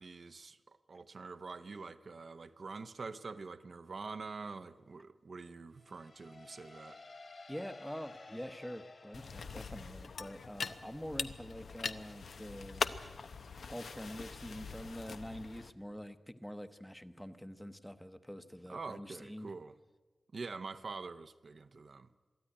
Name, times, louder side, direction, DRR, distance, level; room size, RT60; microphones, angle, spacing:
voice 1, 0.0-7.0 18.7-19.7 20.3-22.1, right 4 dB, 60° right, 0.7 m, -45 dB
sound 1, 5.8-10.5, left 3 dB, 55° left, 2.5 m, -54 dB
voice 2, 7.5-13.0 13.7-19.5, equal, 5° left, 0.8 m, -45 dB
sound 2, 9.1-15.7, left 5 dB, 85° left, 0.8 m, -42 dB
23.0 x 14.0 x 9.9 m
wide cardioid pair, 120°, 0 cm